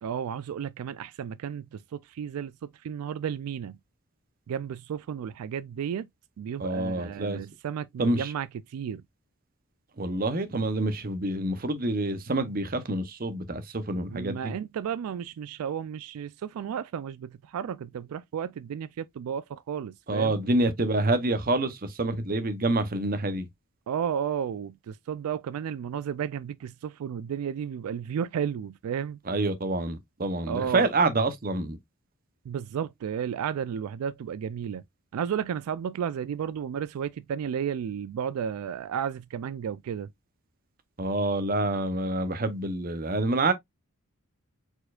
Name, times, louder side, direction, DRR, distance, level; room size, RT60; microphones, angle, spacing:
voice 1, 0.0-3.8 4.5-6.1 6.4-9.0 14.1-20.4 23.9-29.2 30.4-30.8 32.5-34.8 35.1-40.1, right 8 dB, 85° right, 0.3 m, -33 dB
voice 2, 6.6-7.4 8.0-8.3 10.0-14.5 20.1-23.5 29.3-31.8 41.0-43.5, right 2 dB, 40° right, 0.7 m, -27 dB
4.4 x 4.3 x 2.4 m
head